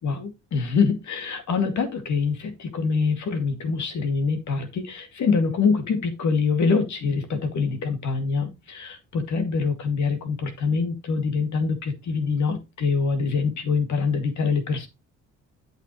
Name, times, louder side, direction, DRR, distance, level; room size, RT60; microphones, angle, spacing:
voice 1, 0.0-14.9, left 5 dB, 65° left, 2.4 m, -25 dB
8.2 x 7.9 x 3.1 m
cardioid pair, 90°, 32 cm